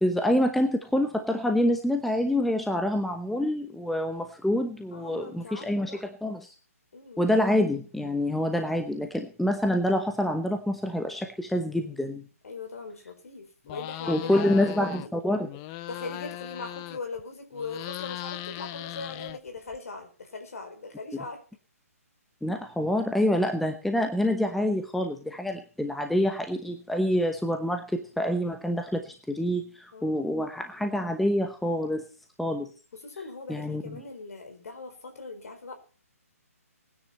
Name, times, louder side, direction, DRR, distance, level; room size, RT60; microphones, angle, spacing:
voice 1, 0.0-6.5 7.2-12.2 14.1-15.5 22.4-27.8 28.2-32.0 32.4-32.7 33.5-34.0, left 1 dB, ahead, 5 dB, 0.9 m, -27 dB
voice 2, 4.9-6.1 6.9-7.4 12.4-15.1 15.9-21.4 29.9-30.3 32.9-35.7, left 3 dB, 65° left, 5 dB, 4.1 m, -40 dB
sound 1, 13.7-15.1 15.4-17.2 17.5-19.8, left 16 dB, 20° left, 0.6 m, -38 dB
20.5 x 9.7 x 4.2 m, 0.39 s
hypercardioid pair, 150°, 8 cm